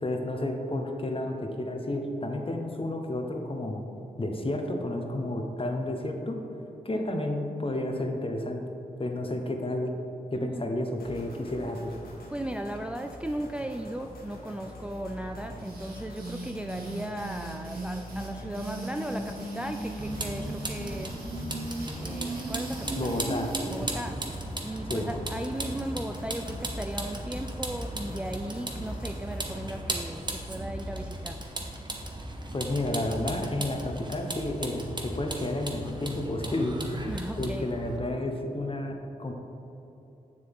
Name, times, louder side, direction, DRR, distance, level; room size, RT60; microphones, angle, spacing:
voice 1, 0.0-3.8 4.2-6.4 6.8-8.6 9.0-9.9 10.3-11.9 23.0-23.5 24.9-25.1 32.5-36.8 37.4-39.3, left 1 dB, 35° left, 3 dB, 1.1 m, -31 dB
voice 2, 10.4-10.7 12.3-21.4 22.0-23.1 23.7-31.5 37.0-37.7, right 1 dB, 5° right, 5 dB, 0.4 m, -36 dB
sound 1, 11.0-29.8, equal, 80° left, 1.2 m, -45 dB
sound 2, 15.6-23.9, right 2 dB, 80° right, 1.6 m, -38 dB
Vehicle, 20.0-38.0, right 1 dB, 30° right, 1.1 m, -36 dB
6.8 x 6.8 x 3.7 m, 2.9 s
cardioid pair, 45°, 15 cm